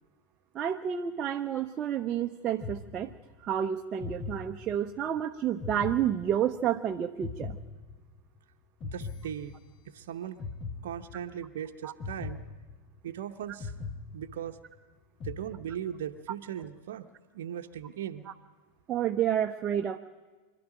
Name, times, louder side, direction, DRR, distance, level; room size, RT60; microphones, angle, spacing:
voice 1, 0.5-3.1 3.4-7.6 11.8-11.9 18.3-18.4 18.9-20.0, right 9 dB, 25° right, 5 dB, 0.8 m, -30 dB
sound 1, 2.6-3.5 4.0-5.1 5.6-6.8 7.2-8.4 8.8-10.0 10.4-11.5 12.0-13.2 13.6-14.8 15.2-16.1, left 4 dB, 30° left, 1.3 m, -41 dB
voice 2, 8.8-9.5 9.8-10.4 10.8-12.4 13.0-13.7 14.1-14.6 15.2-17.1 17.3-18.3, right 9 dB, 55° right, 5 dB, 0.9 m, -38 dB
24.5 x 12.5 x 9.1 m, 1.3 s
figure-of-eight pair, 90°, 0 cm